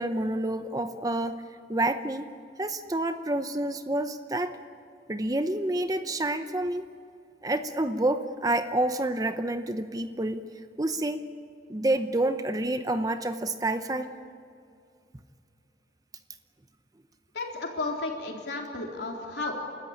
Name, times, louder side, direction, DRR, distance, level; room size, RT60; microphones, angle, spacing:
voice 1, 0.0-1.4 1.7-2.3 2.6-4.6 5.1-6.8 7.4-10.5 10.8-11.2 11.7-14.1, right 1 dB, 20° right, 9 dB, 0.8 m, -28 dB
voice 2, 17.3-19.6, left 3 dB, 65° left, 0 dB, 3.8 m, -33 dB
30.0 x 14.0 x 8.9 m, 2.4 s
head